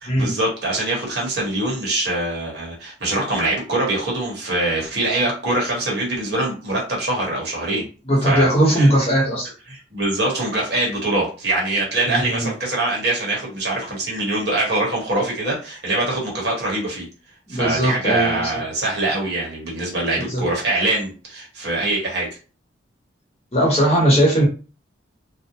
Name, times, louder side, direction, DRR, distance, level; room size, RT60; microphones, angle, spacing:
voice 1, 0.0-7.9 8.2-8.5 8.7-8.9 9.7-17.0 17.5-22.3, right 2 dB, 55° right, -3 dB, 1.1 m, -23 dB
voice 2, 8.1-9.5 12.0-12.5 17.5-18.6 20.3-20.5 23.5-24.5, right 1 dB, 30° left, -4 dB, 1.0 m, -18 dB
2.5 x 2.1 x 2.8 m, 0.36 s
head